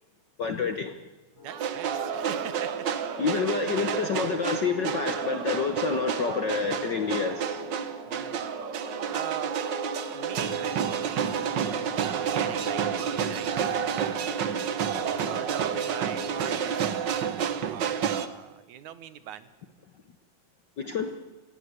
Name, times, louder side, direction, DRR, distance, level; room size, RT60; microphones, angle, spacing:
voice 1, 0.4-1.0 3.2-7.7 20.8-21.2, left 6 dB, 60° left, 8 dB, 1.2 m, -28 dB
sound 1, 1.4-16.7, left 4 dB, 20° left, 6.7 m, -42 dB
voice 2, 1.4-2.7 3.3-3.4 8.1-8.4 9.1-9.5 10.1-11.3 12.0-14.4 15.3-19.5, right 11 dB, 80° right, 13 dB, 2.5 m, -41 dB
sound 2, 1.5-18.3, right 8 dB, 60° right, 1.2 m, -30 dB
25.0 x 17.5 x 8.2 m, 1.1 s
omnidirectional pair, 3.3 m